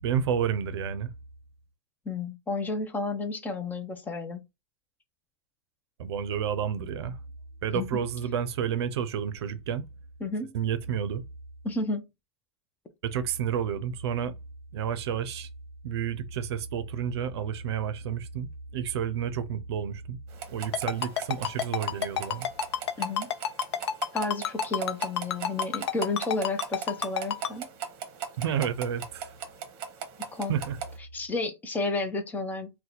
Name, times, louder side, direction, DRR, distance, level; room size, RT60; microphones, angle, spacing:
voice 1, 0.0-1.1 6.0-7.2 7.6-9.9 10.5-11.2 13.0-14.3 14.7-15.5 15.8-20.2 20.5-22.5 28.4-29.3 30.5-30.8, right 8 dB, 70° right, 0.5 m, -30 dB
voice 2, 2.1-4.4 7.7-7.9 10.2-10.5 11.6-12.0 23.0-23.3 24.1-27.7 30.3-30.5 31.1-32.7, left 3 dB, 10° left, 0.5 m, -31 dB
sound 1, 20.3-31.0, right 7 dB, 40° right, 0.8 m, -40 dB
Ringtone, 20.7-27.5, left 8 dB, 75° left, 0.6 m, -28 dB
2.7 x 2.2 x 3.9 m
hypercardioid pair, 135°, 14 cm